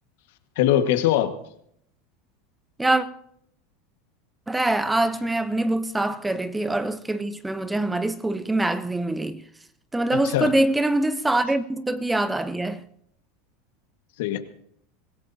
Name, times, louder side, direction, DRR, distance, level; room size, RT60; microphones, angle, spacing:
voice 1, 0.5-1.4 10.2-10.5 14.2-14.4, left 12 dB, 75° left, 1.6 m, -21 dB
voice 2, 4.5-9.4 9.9-12.8, right 2 dB, 10° right, 0.8 m, -24 dB
24.5 x 17.0 x 2.8 m
supercardioid pair, 120°, 0 cm